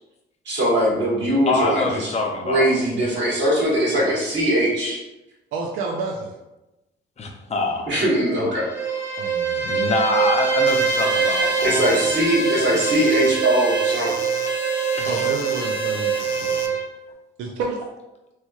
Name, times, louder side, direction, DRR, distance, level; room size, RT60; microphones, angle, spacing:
voice 1, 0.4-2.1 2.4-5.0 7.9-8.7 11.6-14.2, right 1 dB, 65° right, -5 dB, 1.4 m, -21 dB
voice 2, 1.5-2.7 7.2-7.9 9.6-12.0 15.0-15.1, left 3 dB, 35° left, 2 dB, 0.6 m, -24 dB
voice 3, 5.5-6.3 8.4-8.5 9.2-9.7 15.1-16.8 17.4-17.9, right 3 dB, 80° right, 0 dB, 0.4 m, -30 dB
Bowed string instrument, 8.6-16.9, right 6 dB, 10° right, 1.1 m, -23 dB
sound 1, 10.7-16.7, left 6 dB, 75° left, 0.4 m, -35 dB
3.0 x 3.0 x 2.3 m, 0.98 s
cardioid pair, 90°, 20 cm